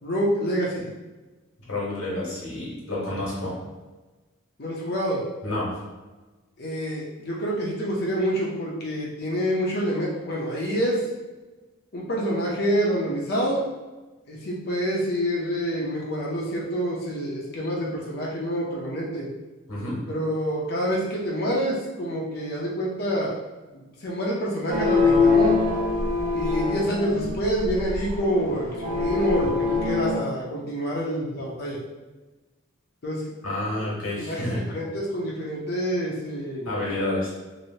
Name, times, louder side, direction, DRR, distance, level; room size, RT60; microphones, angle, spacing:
voice 1, 0.0-0.9 4.6-5.2 6.6-11.0 11.9-13.7 14.3-19.3 20.1-23.3 23.7-25.6 26.3-31.8 33.0-33.2 33.8-33.9 34.1-36.7, equal, 45° left, -4 dB, 0.6 m, -27 dB
voice 2, 1.7-3.5 5.4-5.8 19.7-20.0 33.4-34.6 36.7-37.3, left 1 dB, 85° left, -6 dB, 1.3 m, -29 dB
sound 1, 24.7-30.2, left 4 dB, 40° right, 0.9 m, -24 dB
3.0 x 2.6 x 2.8 m, 1.2 s
head